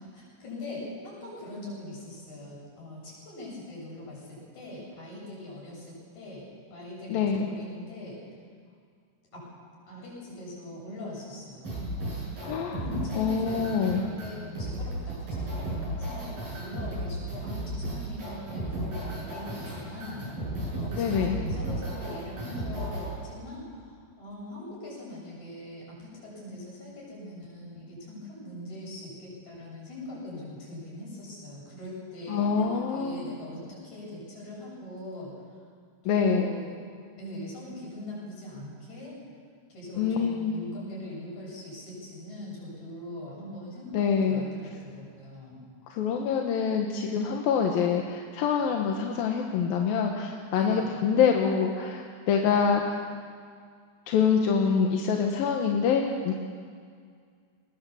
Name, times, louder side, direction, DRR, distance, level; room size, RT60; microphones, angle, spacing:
voice 1, 0.1-8.2 9.3-9.5 9.9-12.1 12.8-20.3 20.8-35.3 36.0-36.8 37.2-39.1 39.7-45.7 50.4-51.0 52.4-52.6, left 1 dB, 40° left, -4 dB, 8.9 m, -41 dB
voice 2, 7.1-7.5 12.4-12.8 13.2-14.1 21.0-21.4 32.3-33.3 36.1-36.5 39.9-40.5 43.9-44.4 45.9-53.0 54.1-56.3, left 6 dB, 65° left, 1 dB, 2.6 m, -25 dB
sound 1, 11.6-23.1, right 1 dB, 50° right, 9.5 m, -34 dB
22.5 x 20.0 x 7.2 m, 2.1 s
omnidirectional pair, 5.0 m